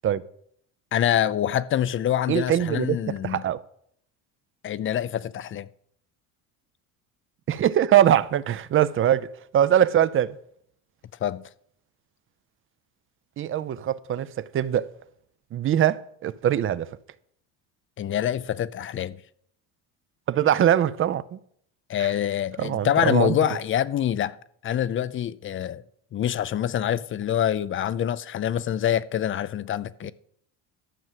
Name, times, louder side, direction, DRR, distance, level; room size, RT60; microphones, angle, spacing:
voice 1, 0.9-3.4 4.6-5.7 11.2-11.4 18.0-19.2 21.9-24.4 24.6-25.8 26.1-30.1, left 10 dB, 35° left, 0.5 m, -25 dB
voice 2, 2.3-3.6 7.5-9.3 9.5-10.4 13.4-14.9 15.5-16.9 20.3-21.4 22.0-22.1 22.6-23.6, right 10 dB, 35° right, 0.5 m, -22 dB
12.5 x 6.3 x 7.4 m
cardioid pair, 125°, 37 cm